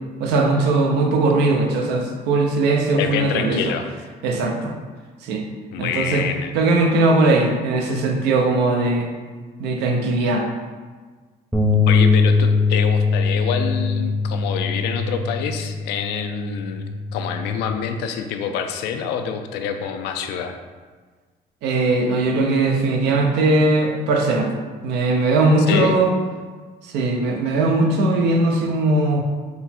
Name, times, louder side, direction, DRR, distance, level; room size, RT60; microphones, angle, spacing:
voice 1, 0.2-3.7 4.2-4.7 5.2-5.4 5.8-6.2 6.5-9.1 9.6-10.5 21.6-24.5 24.8-26.1 26.8-29.2, right 2 dB, 85° right, 2 dB, 0.6 m, -19 dB
voice 2, 3.0-3.9 5.7-6.5 11.9-20.6 25.7-26.0, left 7 dB, 90° left, 6 dB, 0.4 m, -26 dB
sound 1, 11.5-17.8, left 4 dB, 5° right, 0.5 m, -21 dB
3.9 x 2.3 x 4.1 m, 1.4 s
cardioid pair, 110°, 17 cm